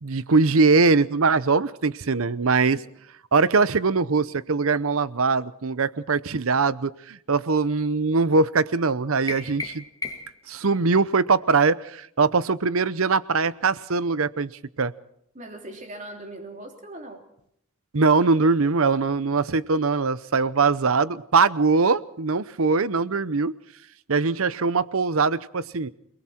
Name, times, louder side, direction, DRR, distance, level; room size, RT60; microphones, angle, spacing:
voice 1, 0.0-2.8 3.3-9.8 10.5-14.5 14.8-14.9 17.9-23.5 24.1-25.9, right 4 dB, 65° right, 17 dB, 0.8 m, -22 dB
sound 1, 9.3-10.5, left 3 dB, 15° left, 2.1 m, -34 dB
voice 2, 15.3-17.3, right 1 dB, 35° right, 3 dB, 3.4 m, -40 dB
28.5 x 20.5 x 4.4 m, 0.74 s
head